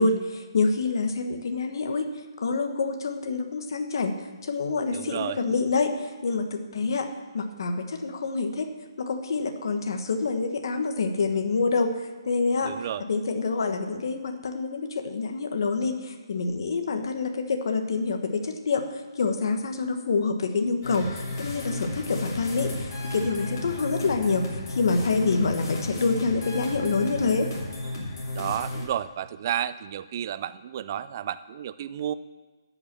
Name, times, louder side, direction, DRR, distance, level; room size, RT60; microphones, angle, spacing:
voice 1, 0.0-2.1 2.4-4.2 4.4-7.1 7.3-8.7 9.0-11.9 12.2-12.7 13.1-18.9 19.1-27.5, left 4 dB, 65° left, 6 dB, 1.2 m, -27 dB
voice 2, 4.9-5.4 12.6-13.1 28.3-32.1, right 10 dB, 40° right, 14 dB, 0.4 m, -31 dB
sound 1, 20.8-28.8, left 2 dB, 45° left, 2.9 m, -33 dB
12.0 x 5.8 x 7.4 m, 1.3 s
hypercardioid pair, 155°, 2 cm